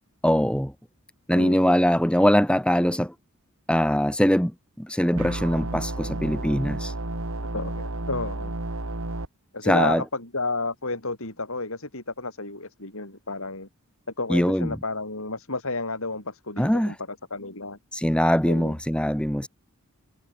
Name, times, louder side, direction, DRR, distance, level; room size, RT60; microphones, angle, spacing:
voice 1, 0.2-0.7 1.3-3.1 3.7-4.5 4.8-6.9 9.6-10.0 14.3-14.8 16.6-16.9 17.9-19.5, equal, 5° left, 4.0 m, -22 dB
voice 2, 1.3-1.7 7.5-8.5 9.5-13.7 14.2-16.9 17.3-17.8 18.5-18.7, left 3 dB, 65° left, 7.5 m, -31 dB
sound 1, 5.1-9.3, right 2 dB, 65° right, 2.1 m, -31 dB
head